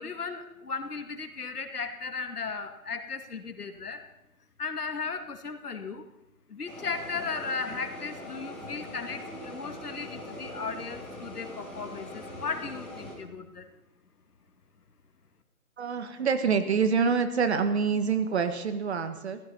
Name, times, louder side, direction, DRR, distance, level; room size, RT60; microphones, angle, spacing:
voice 1, 0.0-4.0 4.6-6.1 6.5-13.7, left 4 dB, 85° left, 7 dB, 2.4 m, -36 dB
sound 1, 6.7-13.1, left 1 dB, ahead, 2.5 m, -42 dB
voice 2, 15.8-19.4, right 5 dB, 45° right, 8 dB, 1.6 m, -26 dB
15.5 x 15.0 x 5.7 m, 0.89 s
hypercardioid pair, 165°, 45 cm